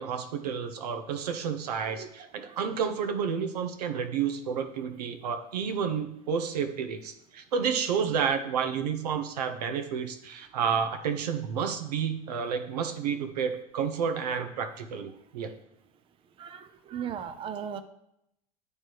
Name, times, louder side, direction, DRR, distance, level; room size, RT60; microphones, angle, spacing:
voice 1, 0.0-15.5, right 7 dB, 75° right, 8 dB, 0.9 m, -30 dB
voice 2, 1.9-2.6 16.4-17.8, right 8 dB, 25° right, 9 dB, 0.5 m, -38 dB
9.6 x 3.3 x 4.6 m, 0.78 s
hypercardioid pair, 95°, 21 cm